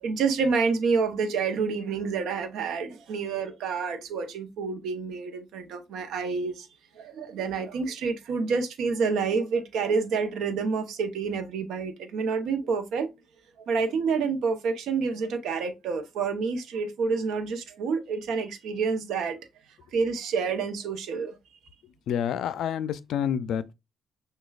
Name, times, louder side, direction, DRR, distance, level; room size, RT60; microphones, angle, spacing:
voice 1, 0.0-6.7 7.0-13.1 13.7-19.4 19.9-21.3, right 5 dB, 80° right, 0.7 m, -28 dB
voice 2, 21.8-23.7, left 9 dB, 75° left, 0.4 m, -29 dB
6.2 x 2.3 x 2.3 m
cardioid pair, 90°, 0 cm